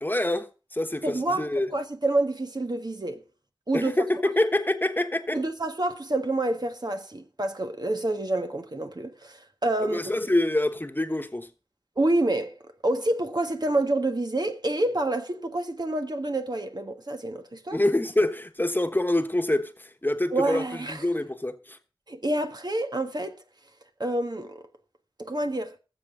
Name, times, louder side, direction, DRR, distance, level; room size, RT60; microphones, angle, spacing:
voice 1, 0.0-1.7 3.7-5.4 9.8-11.5 17.7-21.8, left 1 dB, 25° left, 1.2 m, -26 dB
voice 2, 1.0-1.5 1.7-3.2 3.7-3.9 5.3-10.0 12.0-12.6 12.8-17.8 20.3-21.0 22.1-23.4 24.0-24.6 25.2-25.8, right 2 dB, 55° right, 1.5 m, -28 dB
19.5 x 7.5 x 3.7 m
wide cardioid pair, 45°, 8 cm